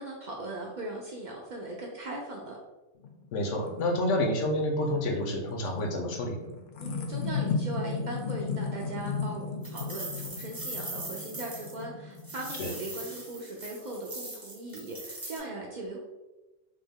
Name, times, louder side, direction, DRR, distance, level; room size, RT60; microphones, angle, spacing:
voice 1, 0.0-2.6 6.8-16.0, right 2 dB, 60° right, -2 dB, 0.5 m, -39 dB
sound 1, 3.0-13.1, left 5 dB, 60° left, 0.6 m, -36 dB
voice 2, 3.3-6.4 12.6-12.7, left 1 dB, 85° left, 2 dB, 1.0 m, -29 dB
sound 2, 9.6-11.8 12.1-15.4, right 2 dB, 20° right, 0.7 m, -41 dB
3.4 x 2.2 x 3.5 m, 1.1 s
omnidirectional pair, 1.2 m